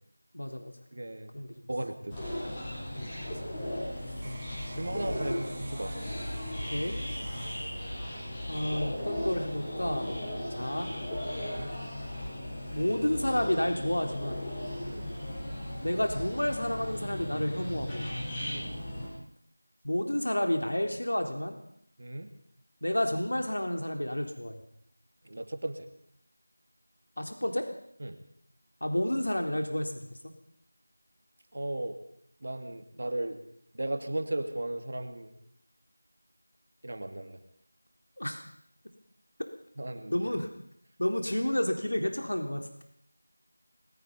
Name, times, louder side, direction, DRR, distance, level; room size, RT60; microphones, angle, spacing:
voice 1, 0.3-0.7 1.3-1.6 2.9-3.3 6.7-7.0 8.5-10.1 10.5-10.9 12.7-14.4 15.8-18.1 19.8-21.6 22.8-24.6 27.2-27.7 28.8-30.0 38.2-38.4 40.1-40.5 41.0-42.8, left 1 dB, 80° left, 4 dB, 3.8 m, -30 dB
voice 2, 0.9-1.4 1.7-2.2 4.2-6.0 11.4-11.7 14.9-15.1 18.5-18.8 22.0-22.3 25.2-25.9 28.0-28.2 31.5-32.0 32.4-33.4 33.7-35.4 36.8-37.4 39.8-40.3, right 1 dB, 45° right, 7 dB, 2.4 m, -36 dB
sound 1, 2.1-19.1, left 1 dB, 10° left, 6.4 m, -36 dB
sound 2, 3.4-9.3 9.8-10.3, right 2 dB, 20° right, 2.2 m, -52 dB
21.5 x 21.5 x 5.5 m, 0.69 s
figure-of-eight pair, 175°, 0 cm